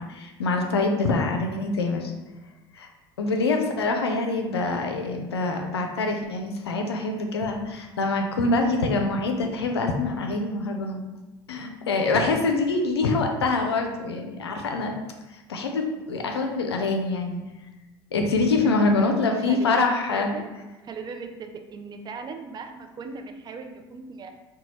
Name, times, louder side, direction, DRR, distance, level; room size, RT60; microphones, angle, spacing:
voice 1, 0.0-2.1 2.8-2.9 3.2-11.0 11.5-14.9 15.5-17.4 18.1-20.3, left 3 dB, 85° left, 3 dB, 0.4 m, -25 dB
voice 2, 19.4-19.8 20.1-20.5 20.8-24.3, right 4 dB, 30° right, 5 dB, 0.4 m, -39 dB
3.9 x 2.3 x 3.0 m, 1.1 s
figure-of-eight pair, 65°, 13 cm